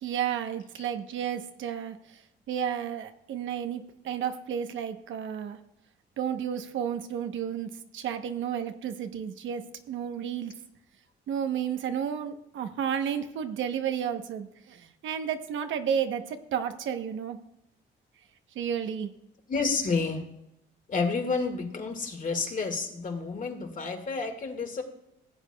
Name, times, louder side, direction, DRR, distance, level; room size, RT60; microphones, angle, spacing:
voice 1, 0.0-2.2 2.5-5.6 6.2-9.6 9.9-10.5 11.3-17.4 18.5-19.1, right 8 dB, 75° right, 7 dB, 0.9 m, -32 dB
voice 2, 19.5-20.2 20.9-24.8, left 4 dB, 40° left, 5 dB, 1.8 m, -30 dB
16.0 x 8.3 x 2.2 m, 0.82 s
cardioid pair, 90°, 20 cm